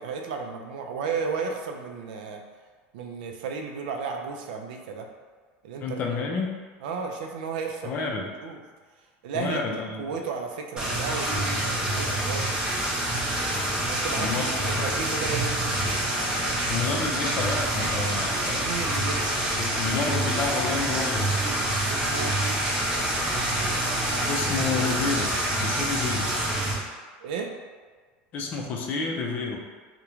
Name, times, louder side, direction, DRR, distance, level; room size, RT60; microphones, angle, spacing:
voice 1, 0.0-2.4 2.9-5.1 5.6-6.0 6.8-8.1 8.4-8.6 9.2-9.7 10.0-12.6 13.9-15.7 18.6-19.2 21.9-22.4 27.2-27.6, right 5 dB, 90° right, 3 dB, 0.3 m, -33 dB
voice 2, 5.8-6.5 7.8-8.3 9.3-10.0 14.1-14.9 16.7-18.8 19.2-19.3 19.6-21.5 24.3-25.3 25.6-26.3 28.3-29.6, left 4 dB, 35° left, 0 dB, 0.4 m, -30 dB
sound 1, 10.8-26.7, right 1 dB, 20° right, 0.5 m, -26 dB
2.4 x 2.1 x 2.9 m, 1.5 s
supercardioid pair, 150°, 5 cm